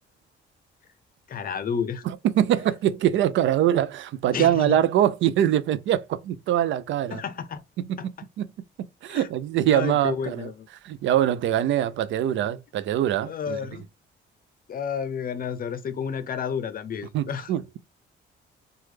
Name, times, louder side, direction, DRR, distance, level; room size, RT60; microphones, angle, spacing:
voice 1, 1.3-2.0 4.3-4.8 7.1-7.6 8.0-8.1 9.1-9.3 9.7-10.7 13.3-13.8 14.7-17.5, left 7 dB, 45° left, 0.6 m, -31 dB
voice 2, 2.1-7.2 8.0-8.1 8.4-8.5 9.0-10.5 10.8-13.6 17.1-17.8, right 11 dB, 70° right, 0.4 m, -23 dB
3.1 x 2.3 x 3.2 m
cardioid pair, 90°, 20 cm